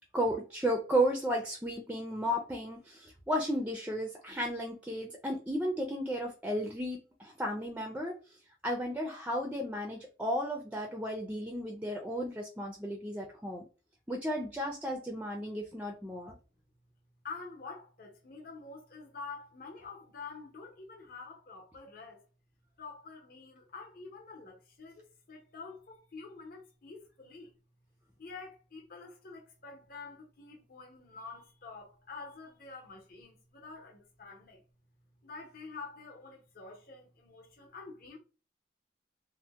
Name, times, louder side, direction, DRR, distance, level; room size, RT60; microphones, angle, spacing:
voice 1, 0.1-8.2 8.6-13.6 14.1-16.3, equal, 10° right, 0.4 m, -34 dB
voice 2, 17.2-22.2 22.8-27.5 28.2-34.6 35.2-38.2, left 4 dB, 55° left, 0.8 m, -47 dB
2.7 x 2.1 x 3.4 m
head